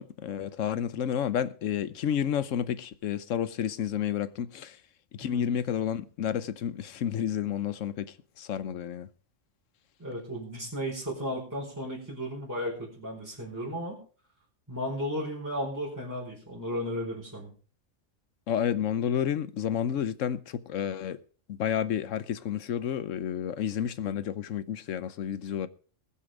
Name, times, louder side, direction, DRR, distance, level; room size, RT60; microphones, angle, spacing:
voice 1, 0.0-4.8 5.1-9.1 18.5-21.2 21.5-25.7, left 9 dB, 85° left, 1.2 m, -30 dB
voice 2, 10.0-14.0 14.7-17.5, equal, 15° right, 4.8 m, -34 dB
20.5 x 7.0 x 5.0 m
omnidirectional pair, 1.3 m